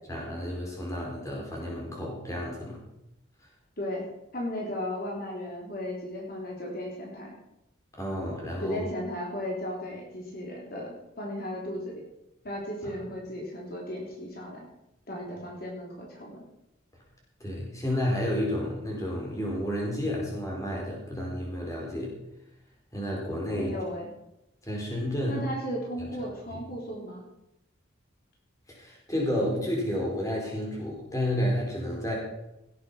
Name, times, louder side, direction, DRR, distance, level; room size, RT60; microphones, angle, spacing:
voice 1, 0.1-2.8 8.0-8.8 17.4-22.2 22.9-23.7 24.6-25.4 26.5-26.6 28.7-32.1, equal, 15° left, -3 dB, 4.3 m, -31 dB
voice 2, 4.3-7.4 8.6-12.0 12.4-14.7 15.1-16.4 23.5-24.1 25.3-27.2, left 1 dB, 45° left, -2 dB, 3.5 m, -35 dB
17.5 x 8.5 x 5.6 m, 0.87 s
head